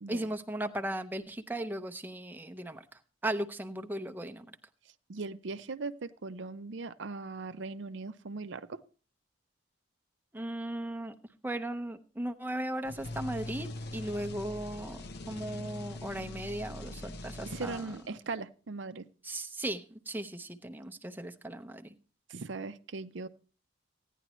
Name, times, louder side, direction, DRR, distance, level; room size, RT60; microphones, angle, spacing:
voice 1, 0.1-2.8 3.2-4.4 10.3-11.1 11.4-13.7 13.9-17.9 19.2-21.9, right 1 dB, 10° right, 6 dB, 0.7 m, -37 dB
voice 2, 5.1-8.8 17.4-19.1 22.3-23.3, right 3 dB, 60° right, 11 dB, 0.6 m, -39 dB
sound 1, 12.8-18.3, left 1 dB, 50° left, 0.7 m, -42 dB
16.0 x 10.0 x 3.1 m, 0.36 s
head